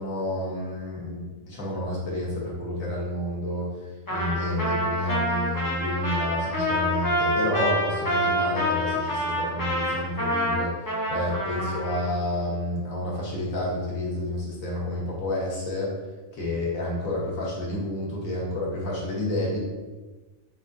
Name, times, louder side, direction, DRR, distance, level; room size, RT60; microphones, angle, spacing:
voice 1, 0.0-3.7 4.1-10.7 11.1-15.9 16.3-19.6, left 1 dB, 85° left, -4 dB, 1.4 m, -29 dB
Trumpet, 4.1-12.1, equal, 20° left, 0.6 m, -27 dB
3.6 x 3.6 x 2.5 m, 1.2 s
omnidirectional pair, 1.4 m